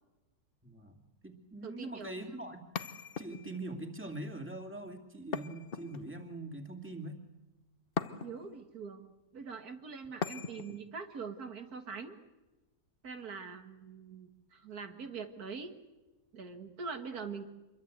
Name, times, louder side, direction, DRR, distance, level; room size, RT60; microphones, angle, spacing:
voice 1, 0.6-2.6 3.2-7.2, right 2 dB, 10° right, 3 dB, 2.5 m, -43 dB
voice 2, 1.6-2.1 8.2-12.2 13.0-15.7 16.3-17.5, right 5 dB, 85° right, 6 dB, 2.3 m, -43 dB
sound 1, 2.7-3.7 5.3-6.3 8.0-8.6 10.2-10.8, left 6 dB, 45° left, 1.0 m, -39 dB
26.5 x 22.5 x 8.1 m, 1.1 s
omnidirectional pair, 1.6 m